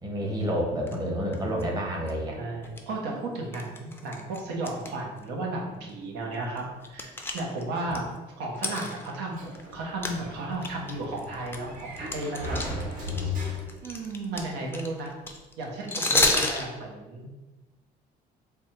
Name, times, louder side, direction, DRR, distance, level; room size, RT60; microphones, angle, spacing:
voice 1, 0.0-2.4, equal, 20° right, 0 dB, 0.9 m, -29 dB
sound 1, 0.9-1.0 1.3-1.6 2.1-2.2 2.6-2.8 3.5-4.9 5.2-5.3 5.9-6.0 6.3-8.0 8.5-9.7 10.0-10.2 10.5-13.2 13.5-16.6, left 2 dB, 15° left, 0.5 m, -29 dB
voice 2, 2.4-6.6 6.9-8.1 8.4-12.6 13.8-15.1 15.6-17.3, right 2 dB, 85° right, -1 dB, 1.0 m, -34 dB
Sliding door, 9.3-14.0, left 3 dB, 50° right, 1.3 m, -36 dB
3.4 x 2.3 x 4.2 m, 1.1 s
cardioid pair, 110°, 17 cm